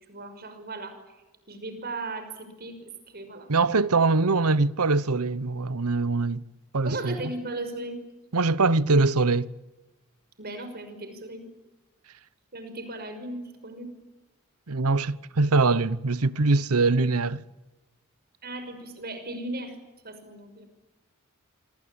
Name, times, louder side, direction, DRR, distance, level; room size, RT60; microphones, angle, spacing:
voice 1, 0.1-1.0 1.5-3.5 6.8-8.0 10.4-11.5 12.5-13.9 18.4-19.7 20.0-20.7, right 2 dB, 45° right, 5.9 m, -37 dB
voice 2, 3.5-6.4 6.7-7.3 8.3-9.5 14.7-17.4, right 3 dB, 90° right, 1.0 m, -23 dB
26.5 x 25.5 x 8.8 m
head